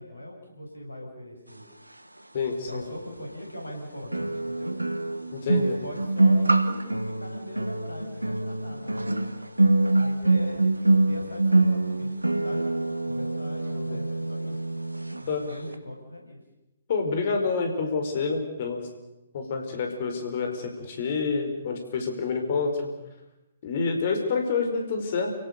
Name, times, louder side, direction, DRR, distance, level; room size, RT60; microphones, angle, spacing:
voice 1, 0.0-1.6 2.5-4.7 5.4-9.2 9.9-12.1 12.4-14.7 15.2-16.4, left 1 dB, 80° left, 1 dB, 7.2 m, -41 dB
voice 2, 2.3-2.8 5.3-5.8 13.7-14.0 15.3-15.5 16.9-18.9 19.3-22.9 23.6-25.3, left 4 dB, 45° left, 5 dB, 5.0 m, -28 dB
sound 1, 2.7-2.8 4.1-15.2 15.5-15.7, right 2 dB, 85° right, 1.4 m, -25 dB
29.0 x 17.5 x 6.8 m, 0.98 s
figure-of-eight pair, 125°, 0 cm